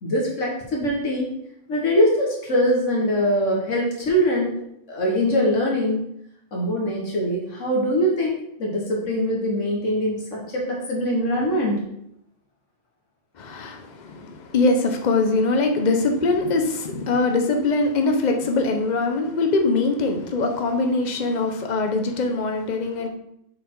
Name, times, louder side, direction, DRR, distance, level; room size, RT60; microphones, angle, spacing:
voice 1, 0.0-1.3 1.7-4.6 4.9-6.0 6.5-8.3 8.6-11.9, equal, 75° left, -2 dB, 1.8 m, -22 dB
voice 2, 13.4-23.1, left 3 dB, 40° left, 4 dB, 0.9 m, -22 dB
7.2 x 4.2 x 4.6 m, 0.77 s
omnidirectional pair, 1.3 m